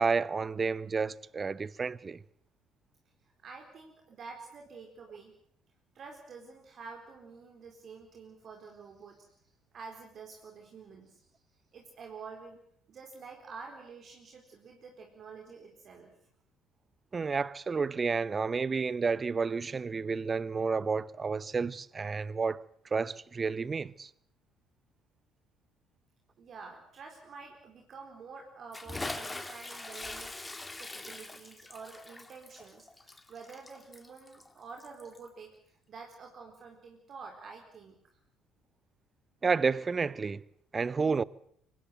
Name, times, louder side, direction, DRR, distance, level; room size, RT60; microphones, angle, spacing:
voice 1, 0.0-2.2 17.1-22.6 22.9-24.1 39.4-40.4 40.7-41.2, right 5 dB, 30° right, 0.9 m, -30 dB
voice 2, 3.2-5.3 5.9-9.4 9.7-11.3 11.7-12.6 12.9-16.1 26.4-38.2, right 5 dB, 45° right, 4.2 m, -48 dB
Bathtub (filling or washing) / Splash splatter, 28.7-35.3, left 2 dB, 15° left, 2.5 m, -42 dB
25.0 x 19.0 x 7.9 m
figure-of-eight pair, 55°, 0 cm